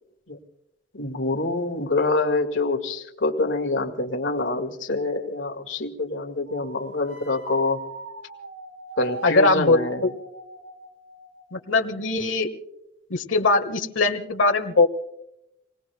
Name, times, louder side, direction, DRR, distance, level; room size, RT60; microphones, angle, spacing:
voice 1, 0.9-7.8 9.0-10.1, left 2 dB, 75° left, 4 dB, 1.9 m, -26 dB
sound 1, 6.5-12.0, right 3 dB, 70° right, 4.4 m, -40 dB
voice 2, 9.2-10.1 11.5-12.5 13.1-14.9, left 3 dB, 90° left, 7 dB, 1.4 m, -21 dB
28.5 x 19.5 x 2.2 m, 0.87 s
head